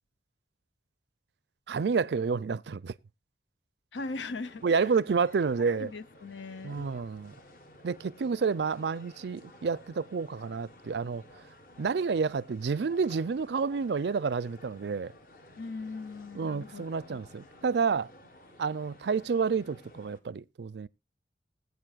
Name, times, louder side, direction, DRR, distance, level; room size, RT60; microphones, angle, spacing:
voice 1, 1.7-2.9 4.6-5.9 6.6-7.3 7.8-11.2 11.8-15.1 16.3-18.1 18.6-20.9, right 5 dB, 70° right, 0.4 m, -29 dB
voice 2, 3.9-4.9 5.7-6.9 15.6-16.8 17.1-17.3, left 3 dB, 85° left, 0.7 m, -39 dB
sound 1, 3.9-20.2, left 1 dB, 50° left, 1.3 m, -54 dB
20.0 x 8.2 x 2.4 m
head